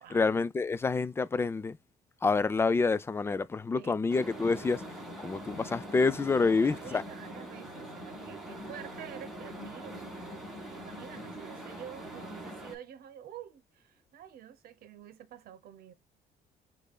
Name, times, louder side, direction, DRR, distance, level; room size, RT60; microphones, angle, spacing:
voice 1, 0.1-1.8 2.2-4.8 5.2-7.0, left 4 dB, 15° left, 0.3 m, -27 dB
voice 2, 3.7-4.1 6.4-15.9, right 10 dB, 65° right, 0.9 m, -48 dB
sound 1, 4.1-12.8, right 1 dB, ahead, 1.5 m, -43 dB
6.5 x 2.5 x 2.2 m
cardioid pair, 110°, 17 cm